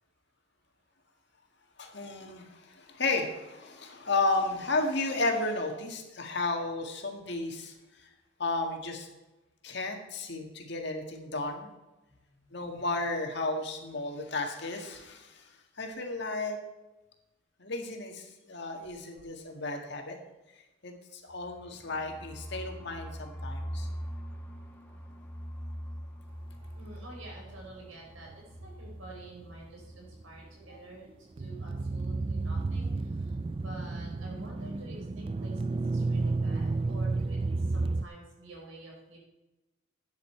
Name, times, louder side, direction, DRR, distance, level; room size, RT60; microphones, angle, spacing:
voice 1, 1.8-7.7 8.4-9.1 9.6-11.7 12.5-15.5 15.8-16.6 17.6-20.2 20.8-23.9, left 2 dB, 60° left, 3 dB, 1.9 m, -33 dB
voice 2, 12.1-12.6 26.8-39.2, right 2 dB, 90° right, -1 dB, 5.0 m, -49 dB
sound 1, 21.3-31.0 31.3-31.4 31.7-32.2, equal, 10° left, 1.3 m, -43 dB
sound 2, 28.3-29.4 31.4-38.1, right 3 dB, 25° right, 0.3 m, -31 dB
12.5 x 9.6 x 4.5 m, 1.1 s
head